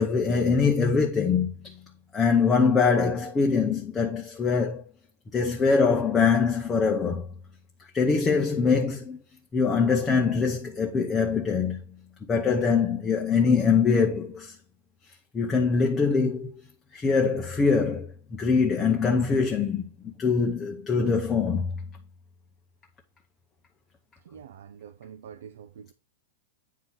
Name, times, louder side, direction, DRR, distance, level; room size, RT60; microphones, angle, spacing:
voice 1, 0.0-1.7 2.1-4.9 5.3-7.3 7.9-9.2 9.5-11.8 12.3-14.5 15.3-16.5 16.9-21.7, left 5 dB, 10° left, 0.8 m, -23 dB
voice 2, 24.3-25.9, right 8 dB, 75° right, 0.6 m, -45 dB
9.3 x 3.9 x 5.9 m
supercardioid pair, 175°, 0 cm